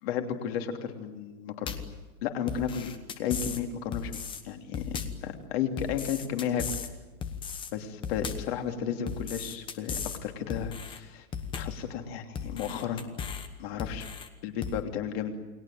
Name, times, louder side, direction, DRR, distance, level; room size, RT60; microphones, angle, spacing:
voice 1, 0.0-1.8 2.2-4.1 4.4-6.6 7.7-11.2 11.5-13.0 13.6-14.1 14.4-15.3, left 8 dB, 40° left, 5 dB, 3.1 m, -33 dB
sound 1, 1.7-2.0 2.5-3.6 3.9-4.4 4.7-5.2 5.8-6.9 7.2-7.7 8.0-8.5 9.1-10.2 10.5-11.0 11.3-11.8 12.3-13.5 13.8-14.3 14.6-14.8, left 6 dB, 10° left, 1.1 m, -36 dB
29.5 x 21.0 x 9.2 m, 1.2 s
supercardioid pair, 175°, 45 cm